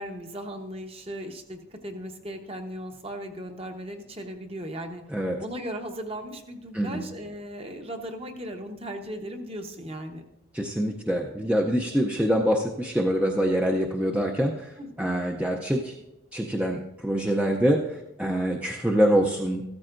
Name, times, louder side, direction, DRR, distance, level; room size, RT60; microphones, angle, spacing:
voice 1, 0.0-5.0 5.4-10.2 14.8-15.1, equal, 30° right, 4 dB, 1.0 m, -37 dB
voice 2, 10.5-16.0 16.3-19.6, equal, 5° right, 0 dB, 0.5 m, -25 dB
14.5 x 13.5 x 2.6 m, 0.92 s
head